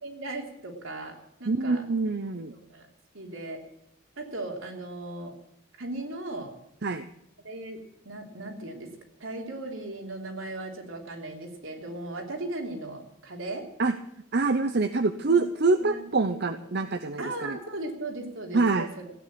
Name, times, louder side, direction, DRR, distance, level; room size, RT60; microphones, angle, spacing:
voice 1, 0.0-1.8 2.5-2.9 3.1-3.6 4.2-5.3 5.8-6.5 7.4-7.8 8.0-8.9 9.2-13.7 15.3-15.5 15.8-16.6 17.2-19.1, right 2 dB, 70° right, 2 dB, 3.2 m, -37 dB
voice 2, 1.5-2.5 6.8-7.1 13.8-14.0 14.3-17.6 18.5-18.9, right 3 dB, 50° right, 10 dB, 0.7 m, -25 dB
16.0 x 9.5 x 8.3 m, 0.79 s
head